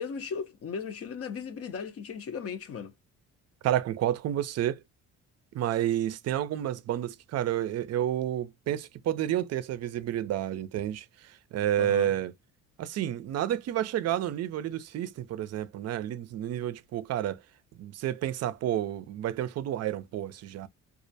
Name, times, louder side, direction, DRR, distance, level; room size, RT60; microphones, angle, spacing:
voice 1, 0.0-2.9 11.8-12.1, left 6 dB, 50° left, 0.6 m, -36 dB
voice 2, 3.6-4.8 5.5-12.3 12.8-17.4 17.8-20.7, right 11 dB, 55° right, 0.5 m, -30 dB
2.4 x 2.0 x 2.6 m
cardioid pair, 90°, 30 cm